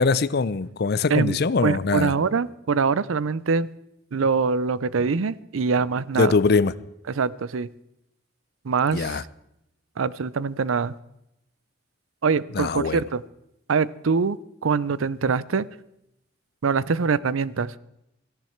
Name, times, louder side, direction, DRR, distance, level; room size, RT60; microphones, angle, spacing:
voice 1, 0.0-2.1 6.2-6.7 8.9-9.2 12.5-13.0, left 4 dB, 50° left, 18 dB, 0.5 m, -22 dB
voice 2, 1.6-3.7 4.1-6.3 7.1-7.7 8.6-9.2 10.0-10.9 12.2-13.2 13.7-15.7 16.6-17.8, right 5 dB, 80° right, 19 dB, 0.5 m, -24 dB
17.5 x 14.5 x 4.5 m, 0.84 s
head